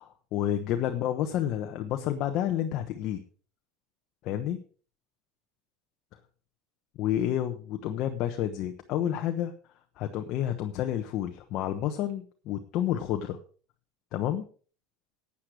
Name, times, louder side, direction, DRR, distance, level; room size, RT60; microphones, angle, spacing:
voice 1, 0.0-3.2 4.2-4.6 7.0-9.5 10.0-13.4 14.1-14.4, left 11 dB, 45° left, 6 dB, 1.0 m, -30 dB
12.5 x 8.6 x 4.9 m, 0.40 s
supercardioid pair, 160°, 0 cm